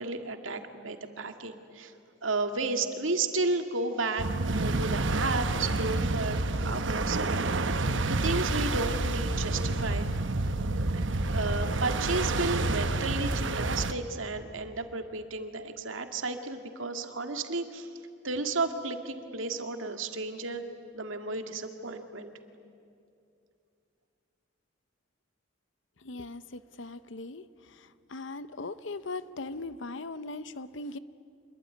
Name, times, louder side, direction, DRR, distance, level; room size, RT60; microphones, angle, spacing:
voice 1, 0.0-1.9 2.2-10.1 10.9-17.9 18.2-20.6 20.9-22.3, right 3 dB, 85° right, 6 dB, 2.0 m, -33 dB
sound 1, 4.2-13.9, right 2 dB, 65° right, 1.1 m, -29 dB
voice 2, 26.0-27.4 27.8-31.0, left 3 dB, 65° left, 14 dB, 0.8 m, -39 dB
26.0 x 21.5 x 9.9 m, 2.5 s
head